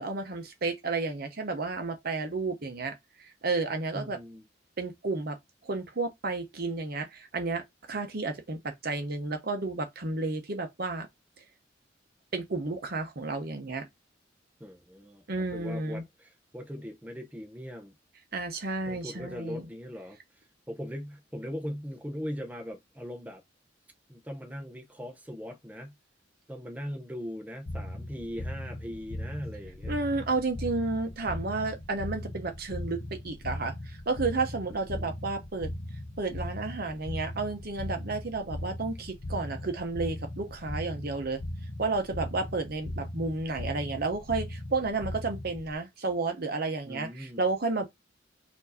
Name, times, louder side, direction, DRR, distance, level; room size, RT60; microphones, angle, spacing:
voice 1, 0.0-4.2 4.8-5.4 5.6-11.1 12.3-13.9 15.3-16.0 18.3-19.7 29.9-35.7 36.2-41.4 41.8-47.9, right 3 dB, 55° right, 0.9 m, -32 dB
voice 2, 3.9-4.4 14.6-18.0 18.9-23.4 24.1-26.0 26.5-29.9 34.7-35.1 46.8-47.4, equal, 10° right, 0.6 m, -40 dB
sound 1, 27.7-45.7, left 1 dB, 45° left, 0.6 m, -39 dB
4.4 x 2.7 x 4.1 m
head